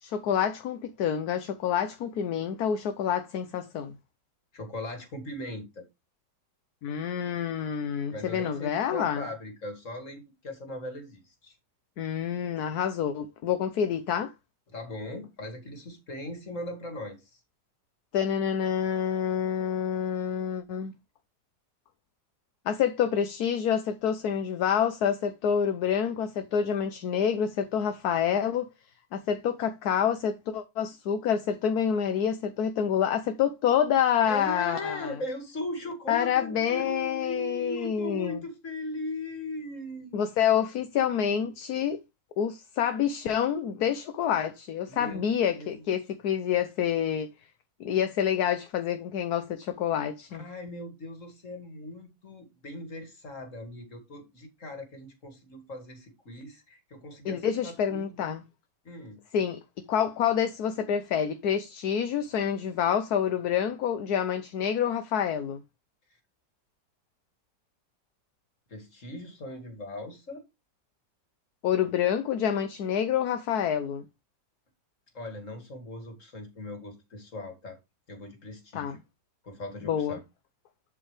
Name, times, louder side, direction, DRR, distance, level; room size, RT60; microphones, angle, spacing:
voice 1, 0.0-3.9 6.8-9.3 12.0-14.3 18.1-20.9 22.7-28.7 29.1-35.2 36.1-38.4 40.1-42.0 42.4-47.3 47.8-50.4 57.2-58.4 59.3-59.6 59.9-65.6 71.6-74.0 78.7-79.0 79.8-80.2, left 8 dB, 65° left, 1.3 m, -27 dB
voice 2, 4.5-5.9 8.1-11.6 14.7-17.4 34.2-40.2 44.9-45.8 50.3-58.4 58.8-59.2 68.7-70.4 75.1-77.8 78.1-79.0 79.4-80.2, left 1 dB, 45° left, 2.7 m, -39 dB
11.0 x 5.5 x 3.4 m
omnidirectional pair, 1.9 m